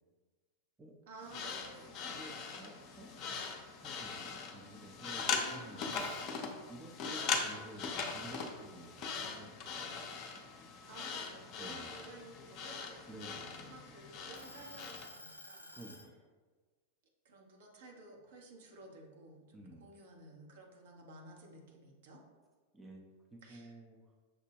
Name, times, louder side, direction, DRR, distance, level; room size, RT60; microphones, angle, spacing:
voice 1, 1.1-2.1 5.3-6.0 10.8-16.0 17.2-22.2 23.4-23.7, right 2 dB, 55° right, 0 dB, 0.8 m, -54 dB
sound 1, 1.2-15.1, left 5 dB, 35° left, 0.5 m, -41 dB
voice 2, 2.0-3.3 3.8-6.1 6.7-9.8 11.6-11.9 13.1-13.7 15.7-16.3 19.5-19.9 22.7-23.0 23.3-24.0, right 1 dB, 15° right, -1 dB, 0.5 m, -52 dB
sound 2, 5.9-6.8 7.2-9.0 9.5-9.7 10.2-12.0 12.7-13.8 14.3-16.1, left 1 dB, 90° left, 0.4 m, -53 dB
6.0 x 2.1 x 3.4 m, 1.4 s
figure-of-eight pair, 90°, 0 cm